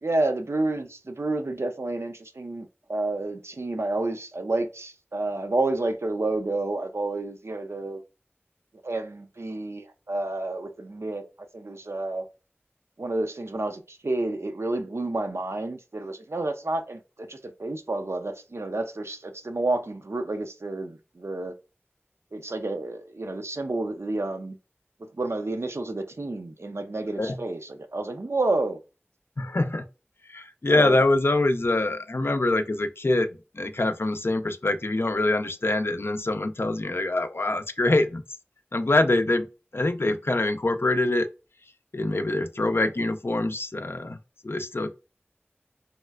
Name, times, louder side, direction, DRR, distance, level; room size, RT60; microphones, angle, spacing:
voice 1, 0.0-8.0 8.8-11.2 11.5-12.3 13.0-21.5 22.3-24.5 25.2-28.8 30.7-31.0, right 2 dB, 80° right, 0.5 m, -30 dB
voice 2, 29.4-29.8 30.3-33.3 33.5-38.2 38.7-39.5 39.7-41.3 41.9-44.2 44.4-44.9, left 2 dB, 60° left, 0.4 m, -24 dB
3.1 x 2.9 x 2.3 m
wide cardioid pair, 45°, 4 cm